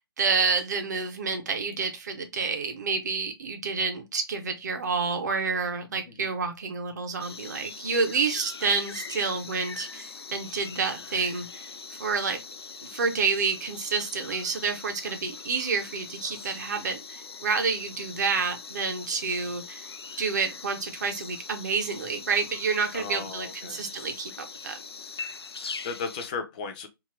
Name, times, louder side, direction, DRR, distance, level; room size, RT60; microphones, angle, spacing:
voice 1, 0.2-11.7 12.0-12.4 12.8-19.9 20.2-24.8, right 5 dB, 45° right, 0.7 m, -29 dB
sound 1, 7.2-26.3, left 5 dB, 80° left, 0.4 m, -42 dB
voice 2, 22.9-23.9 25.6-26.9, left 5 dB, 20° left, 0.4 m, -36 dB
2.7 x 2.4 x 3.1 m
figure-of-eight pair, 150°, 13 cm